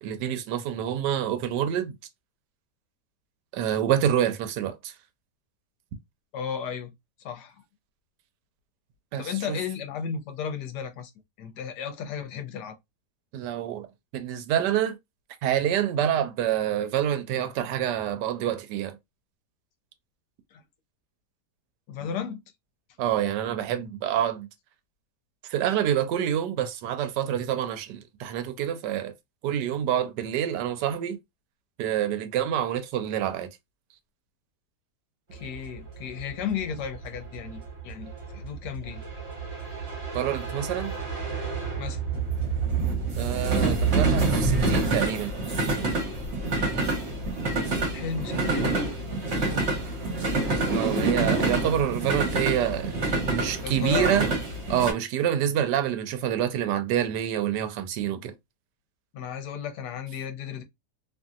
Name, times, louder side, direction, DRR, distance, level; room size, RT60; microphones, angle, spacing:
voice 1, 0.0-1.9 3.5-4.9 9.1-9.6 13.3-13.9 14.1-15.0 15.4-19.0 23.0-24.5 25.5-29.1 29.4-31.2 31.8-33.5 40.1-40.9 43.2-45.3 50.7-53.0 53.2-54.3 54.7-58.3, right 10 dB, 85° right, 1.2 m, -27 dB
voice 2, 6.3-6.9 7.2-7.6 9.2-11.1 11.4-12.8 20.5-20.6 21.9-22.4 35.3-39.0 41.7-42.0 47.9-48.9 53.6-54.3 59.1-60.6, left 7 dB, 85° left, 1.2 m, -34 dB
sound 1, 35.4-54.9, right 3 dB, 45° right, 1.2 m, -27 dB
2.9 x 2.6 x 2.3 m
omnidirectional pair, 1.8 m